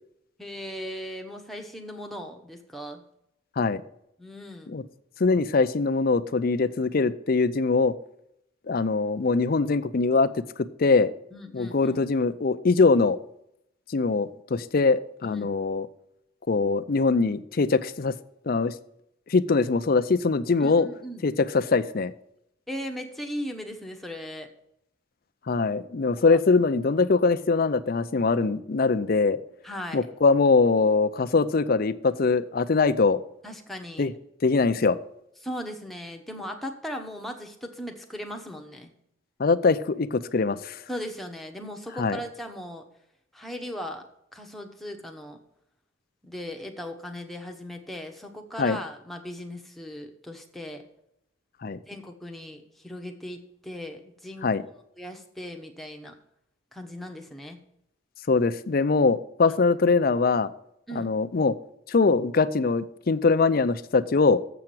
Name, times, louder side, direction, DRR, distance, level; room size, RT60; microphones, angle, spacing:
voice 1, 0.4-3.0 4.2-4.8 11.3-12.0 15.2-15.6 20.6-21.3 22.7-24.5 26.2-26.6 29.6-30.1 33.4-34.1 35.4-38.9 40.9-42.8 43.3-44.0 44.3-45.4 46.2-50.8 51.9-54.5 55.0-56.1 56.7-57.6 60.9-61.1, equal, ahead, 2 dB, 1.0 m, -38 dB
voice 2, 5.2-7.9 8.7-10.3 10.8-11.1 11.5-13.2 13.9-15.9 16.5-18.1 18.5-18.7 19.3-20.9 21.2-22.1 25.5-29.4 29.9-33.2 34.0-34.1 34.4-35.0 39.4-40.8 42.0-42.2 48.6-48.8 51.6-51.8 54.4-54.6 58.3-60.5 60.9-61.5 61.9-64.4, left 4 dB, 45° left, 12 dB, 0.5 m, -22 dB
7.7 x 5.9 x 7.6 m, 0.77 s
head